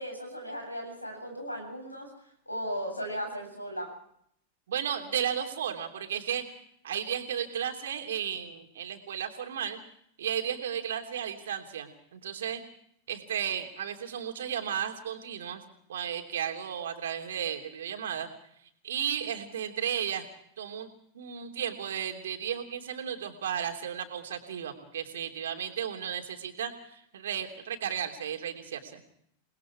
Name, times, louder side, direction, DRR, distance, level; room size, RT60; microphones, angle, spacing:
voice 1, 0.0-2.1 2.5-3.9, equal, 85° left, 4 dB, 7.6 m, -36 dB
voice 2, 4.7-6.4 6.8-9.8 10.2-12.6 13.1-15.6 15.9-18.3 18.8-20.3 20.6-20.9 21.1-29.0, right 9 dB, 60° right, 4 dB, 3.2 m, -34 dB
29.0 x 20.5 x 4.8 m, 0.69 s
figure-of-eight pair, 90°, 0 cm